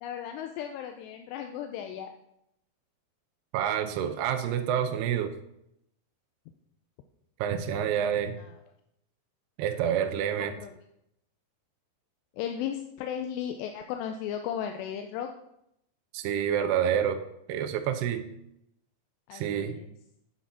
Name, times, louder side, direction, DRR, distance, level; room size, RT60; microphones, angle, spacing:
voice 1, 0.0-2.1 8.4-8.6 10.4-10.7 12.3-15.3 19.3-19.9, left 9 dB, 85° left, 5 dB, 2.8 m, -35 dB
voice 2, 3.5-5.3 7.4-8.3 9.6-10.6 16.1-17.2 17.5-18.2 19.3-19.7, right 9 dB, 80° right, 7 dB, 2.7 m, -28 dB
8.4 x 7.4 x 5.8 m, 0.78 s
omnidirectional pair, 4.9 m